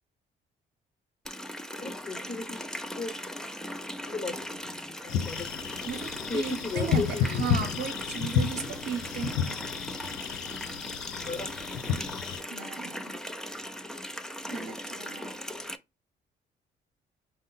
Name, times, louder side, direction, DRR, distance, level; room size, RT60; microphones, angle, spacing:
Water tap faucet, 1.3-15.8, equal, 5° left, 0.4 m, -39 dB
voice 1, 1.8-2.6 2.9-3.2 4.0-5.5 6.2-7.5 11.2-11.5 14.6-14.7, left 3 dB, 30° left, 1.0 m, -36 dB
sound 1, 5.1-12.4, left 8 dB, 80° left, 0.5 m, -31 dB
voice 2, 5.8-9.7 12.5-13.2 14.5-15.4, right 7 dB, 60° right, 0.8 m, -36 dB
5.3 x 2.1 x 3.8 m
cardioid pair, 90°, 20 cm